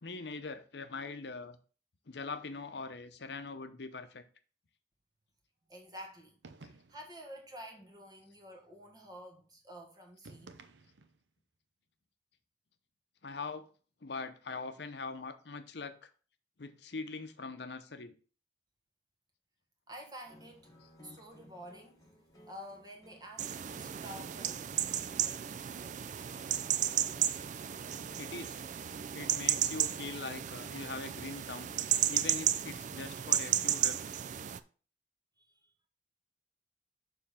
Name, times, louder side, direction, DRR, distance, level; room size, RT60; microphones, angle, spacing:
voice 1, 0.0-1.6 2.1-4.2 13.2-13.7 14.0-16.1 16.6-18.1 28.2-28.6 29.1-31.7 32.1-34.2, left 4 dB, 65° left, 0.7 m, -42 dB
voice 2, 5.7-6.4 6.9-10.5 19.9-20.7 21.0-22.0 22.5-24.8 35.4-35.7, equal, 20° right, 1.3 m, -49 dB
sound 1, 6.4-7.2 10.2-11.3, right 3 dB, 80° right, 0.6 m, -54 dB
sound 2, 20.2-28.4, equal, 20° left, 1.2 m, -61 dB
sound 3, 23.4-34.6, right 10 dB, 40° right, 0.3 m, -33 dB
6.7 x 3.4 x 5.6 m
head